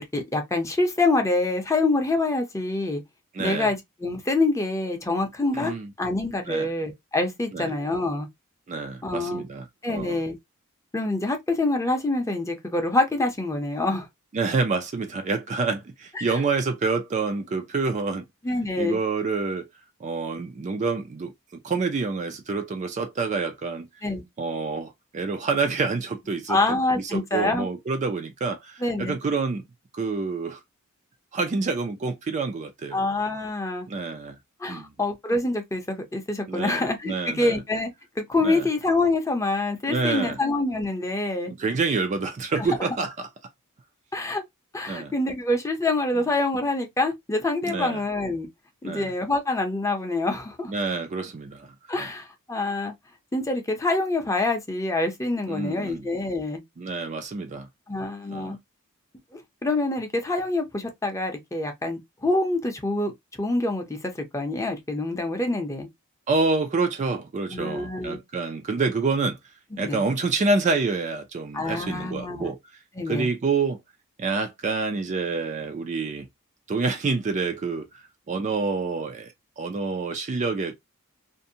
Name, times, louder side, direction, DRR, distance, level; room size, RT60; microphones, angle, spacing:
voice 1, 0.0-3.0 3.4-8.3 9.0-9.5 9.8-10.4 10.9-14.1 16.2-16.4 18.4-19.0 24.0-24.2 26.5-27.7 28.8-29.1 32.9-33.9 34.6-37.9 38.2-41.5 42.6-42.8 44.1-44.4 44.7-48.5 48.8-50.7 51.9-52.9 53.3-56.6 57.9-58.6 59.3-63.1 63.4-65.9 67.5-68.2 69.8-70.0 71.5-72.5 73.0-73.3, left 2 dB, 15° left, 0.6 m, -26 dB
voice 2, 3.3-3.7 5.5-5.9 6.5-6.7 7.5-7.7 8.7-10.2 14.3-18.2 18.8-19.7 20.0-21.3 21.6-23.9 24.4-26.6 27.0-29.6 29.9-30.6 31.3-33.0 33.9-34.4 34.7-34.9 36.5-37.6 38.4-38.7 39.9-40.4 41.5-43.3 44.9-45.1 47.6-48.0 48.8-49.1 50.7-52.1 55.5-56.1 56.8-57.7 58.3-58.6 66.3-69.4 69.8-72.6 73.1-73.8 74.2-76.3 76.7-80.8, right 4 dB, 35° right, 0.4 m, -27 dB
2.6 x 2.1 x 2.6 m
head